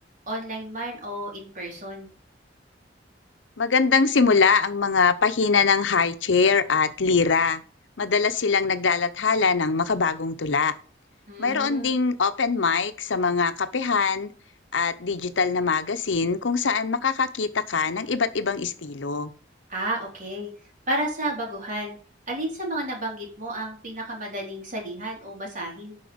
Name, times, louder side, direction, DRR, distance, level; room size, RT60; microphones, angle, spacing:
voice 1, 0.3-2.1 11.3-12.0 19.7-20.5 20.9-22.0 22.3-26.0, right 1 dB, 45° right, 3.8 m, -32 dB
voice 2, 3.6-7.6 8.0-10.7 11.4-14.3 14.7-19.3, left 5 dB, 80° left, 0.8 m, -22 dB
7.9 x 5.8 x 5.1 m
head